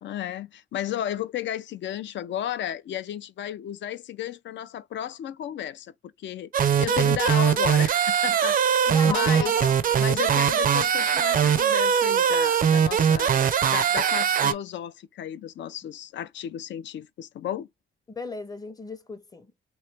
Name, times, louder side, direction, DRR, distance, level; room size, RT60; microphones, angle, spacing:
voice 1, 0.0-5.9 6.2-6.5 6.8-9.5 10.0-13.4 13.7-17.7, left 11 dB, 70° left, 0.4 m, -33 dB
sound 1, 6.5-14.5, right 8 dB, 45° right, 0.4 m, -21 dB
voice 2, 8.8-9.9 18.1-19.5, left 3 dB, 20° left, 0.6 m, -36 dB
3.1 x 2.9 x 3.3 m
cardioid pair, 125°, 20 cm